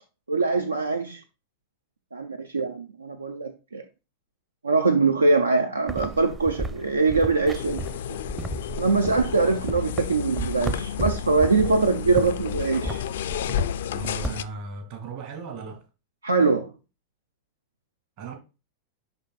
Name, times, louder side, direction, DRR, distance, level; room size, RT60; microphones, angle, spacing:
voice 1, 0.3-1.2 2.1-3.8 4.6-8.2 8.8-13.0 16.2-16.7, right 3 dB, 75° right, 0.5 m, -23 dB
sound 1, 5.9-14.4, right 2 dB, 15° right, 0.6 m, -34 dB
sound 2, 7.5-14.4, left 10 dB, 60° left, 0.3 m, -32 dB
voice 2, 13.9-15.8 18.2-18.4, right 4 dB, 50° right, 2.3 m, -37 dB
11.0 x 3.8 x 2.3 m
figure-of-eight pair, 90°, 0 cm